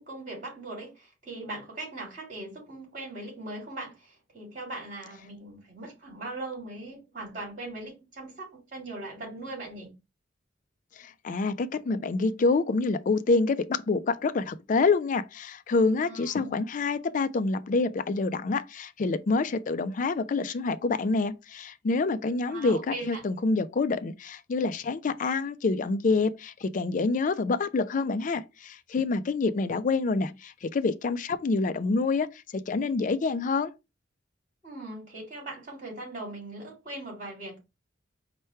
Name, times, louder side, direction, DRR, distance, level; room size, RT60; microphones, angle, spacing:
voice 1, 0.0-9.9 15.9-16.6 22.5-23.2 34.6-37.6, right 2 dB, 40° right, 2.6 m, -40 dB
voice 2, 11.0-33.7, left 3 dB, 40° left, 0.4 m, -27 dB
4.4 x 2.2 x 4.5 m
head